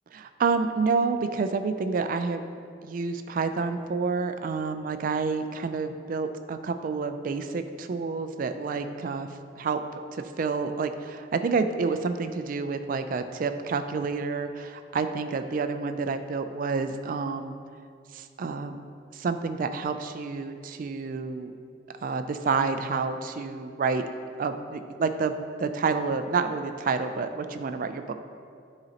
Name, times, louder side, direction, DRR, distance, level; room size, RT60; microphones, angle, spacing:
voice 1, 0.4-2.4 2.8-9.3 9.6-9.8 10.1-17.6 18.1-18.8 19.1-21.5 22.0-24.0 24.4-28.2, right 4 dB, 50° right, 8 dB, 0.3 m, -29 dB
9.9 x 3.9 x 2.8 m, 2.3 s
head